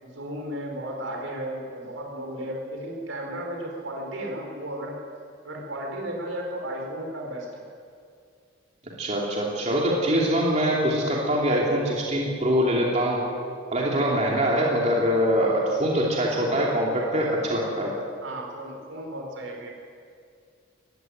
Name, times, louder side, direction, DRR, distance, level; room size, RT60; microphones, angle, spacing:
voice 1, 0.0-5.1 5.4-7.6 17.7-17.9 18.2-19.7, right 1 dB, 75° right, 0 dB, 5.0 m, -34 dB
voice 2, 9.0-13.2 13.7-17.9, equal, 35° right, -3 dB, 2.9 m, -23 dB
20.5 x 16.0 x 9.2 m, 2.3 s
head